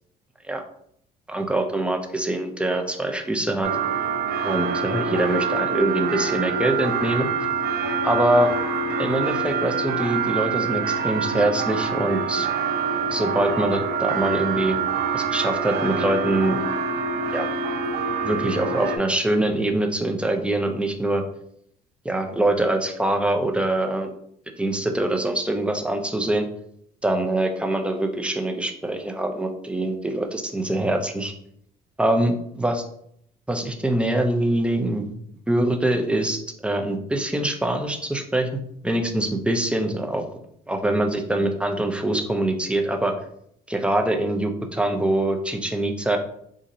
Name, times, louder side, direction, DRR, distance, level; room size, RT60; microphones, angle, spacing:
voice 1, 1.3-3.7 4.4-7.3 8.0-8.5 9.0-12.5 13.1-14.8 15.1-16.6 17.3-17.5 18.2-21.2 22.0-24.1 24.6-26.5 27.0-31.3 32.0-32.3 32.6-32.8 33.5-35.1 35.5-40.3 40.7-43.1 43.7-46.2, right 1 dB, 5° right, 4 dB, 0.4 m, -24 dB
sound 1, 3.6-19.0, right 5 dB, 65° right, 0.5 m, -25 dB
4.1 x 2.5 x 2.7 m, 0.70 s
cardioid pair, 110°, 17 cm